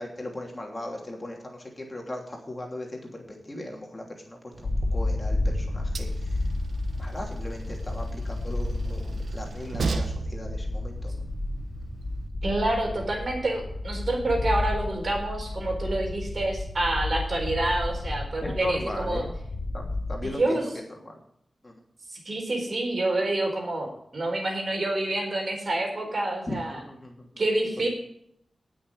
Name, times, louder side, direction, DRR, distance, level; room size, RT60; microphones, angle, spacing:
voice 1, 0.0-6.5 7.0-11.2 18.4-19.4 19.7-21.2 21.6-21.7 26.5-27.3, left 1 dB, 25° left, 0 dB, 3.0 m, -38 dB
Train, 4.5-12.3, right 3 dB, 75° right, 1.1 m, -37 dB
sound 1, 4.6-20.3, left 2 dB, 75° left, 2.6 m, -31 dB
voice 2, 12.4-19.2 20.2-20.6 22.1-26.8 27.4-27.9, right 2 dB, 50° right, 2 dB, 4.3 m, -28 dB
19.0 x 6.5 x 4.9 m, 0.73 s
wide cardioid pair, 110°, 0 cm